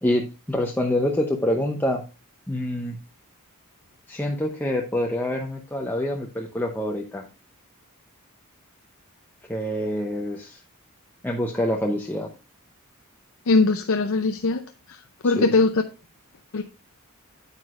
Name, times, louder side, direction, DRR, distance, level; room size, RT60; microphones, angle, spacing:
voice 1, 0.0-2.0 2.5-3.0 4.1-7.3 9.5-10.6 11.2-12.3 15.2-15.5, left 1 dB, 10° left, 1 dB, 0.7 m, -26 dB
voice 2, 13.5-14.6 15.2-15.7 16.5-16.6, left 3 dB, 65° left, 7 dB, 0.6 m, -20 dB
9.0 x 8.2 x 2.5 m, 0.31 s
head